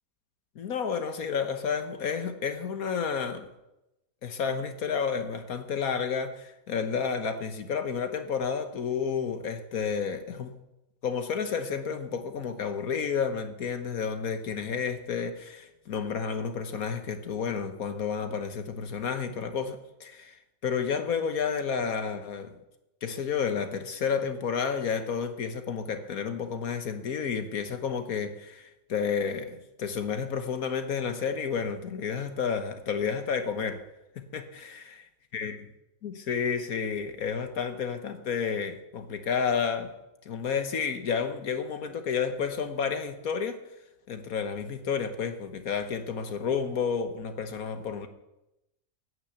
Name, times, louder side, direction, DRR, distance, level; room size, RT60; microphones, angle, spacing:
voice 1, 0.5-3.5 4.2-10.5 11.0-20.4 20.6-22.5 23.0-33.8 34.2-35.0 35.3-35.6 36.0-39.9 40.2-43.6 44.1-48.1, left 6 dB, 75° left, 8 dB, 1.6 m, -31 dB
14.5 x 9.6 x 8.2 m, 0.92 s
omnidirectional pair, 1.5 m